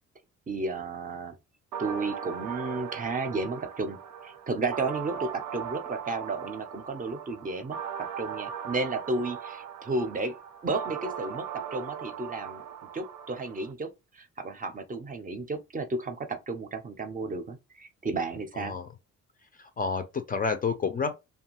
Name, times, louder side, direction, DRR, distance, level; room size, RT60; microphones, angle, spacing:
voice 1, 0.5-1.4 1.8-7.8 8.2-10.4 10.6-11.5 11.7-12.6 12.9-18.8, right 3 dB, 30° right, 0.5 m, -33 dB
sound 1, 1.7-13.7, right 8 dB, 80° right, 0.5 m, -39 dB
voice 2, 19.8-21.2, left 5 dB, 30° left, 0.4 m, -29 dB
2.6 x 2.3 x 2.9 m
cardioid pair, 90°, 30 cm